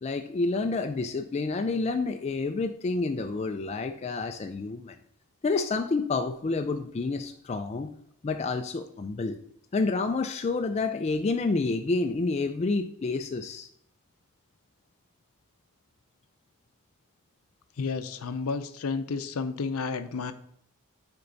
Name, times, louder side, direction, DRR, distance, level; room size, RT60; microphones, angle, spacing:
voice 1, 0.0-5.0 5.4-7.9 8.2-9.4 9.7-13.7, left 3 dB, 30° left, 6 dB, 0.3 m, -29 dB
voice 2, 17.8-20.3, left 4 dB, 70° left, 10 dB, 0.6 m, -31 dB
8.6 x 4.5 x 3.9 m, 0.73 s
head